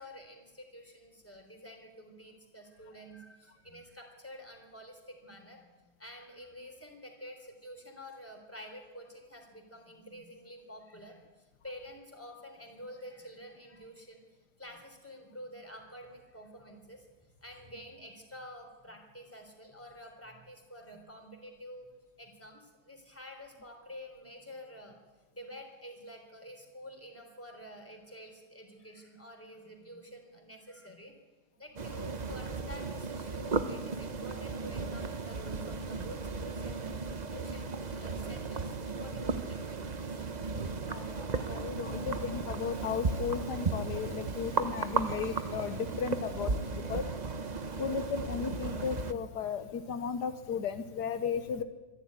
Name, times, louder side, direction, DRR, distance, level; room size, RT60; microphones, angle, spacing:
voice 1, 0.0-17.1 17.4-21.9 22.2-25.0 25.3-31.1 31.6-40.2 46.7-47.2, equal, 10° left, 3 dB, 3.7 m, -49 dB
sound 1, 31.8-49.1, right 4 dB, 35° right, 0.8 m, -35 dB
voice 2, 40.8-47.0 47.8-51.6, left 6 dB, 85° left, 10 dB, 1.7 m, -35 dB
25.5 x 11.5 x 9.7 m, 1.2 s
omnidirectional pair, 1.7 m